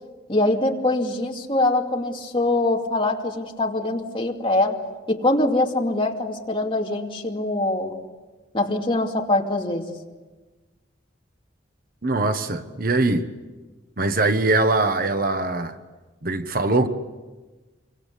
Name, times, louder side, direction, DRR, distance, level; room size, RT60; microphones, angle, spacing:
voice 1, 0.3-8.0 8.5-9.9, left 2 dB, 25° left, 2.6 m, -23 dB
voice 2, 12.0-13.3 14.0-15.8 16.2-16.9, right 2 dB, 45° right, 1.3 m, -22 dB
27.5 x 24.5 x 8.4 m
head